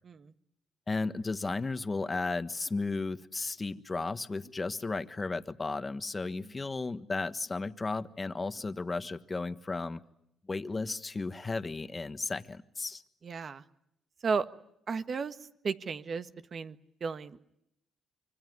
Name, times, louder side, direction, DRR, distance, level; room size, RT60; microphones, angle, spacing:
voice 1, 0.9-10.0 10.5-13.0, left 3 dB, 25° left, 11 dB, 1.4 m, -34 dB
voice 2, 13.2-13.6 14.2-14.5 14.9-15.4 15.6-17.4, right 5 dB, 45° right, 11 dB, 1.5 m, -34 dB
25.5 x 24.5 x 9.6 m, 0.78 s
cardioid pair, 90°, 0 cm